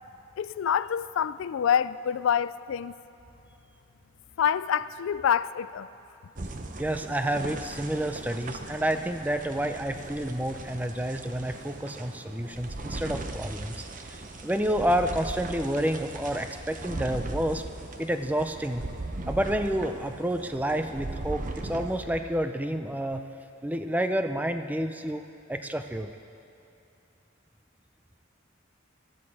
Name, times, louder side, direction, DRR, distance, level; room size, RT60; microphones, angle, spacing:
voice 1, 0.4-2.9 4.4-5.9, left 8 dB, 75° left, 0.3 m, -26 dB
sound 1, 6.4-22.3, right 2 dB, 40° right, 0.8 m, -39 dB
voice 2, 6.8-13.8 14.2-17.6 18.0-18.8 19.3-23.2 23.6-25.2 25.5-26.1, right 1 dB, 10° right, 0.5 m, -29 dB
20.0 x 13.0 x 4.8 m
head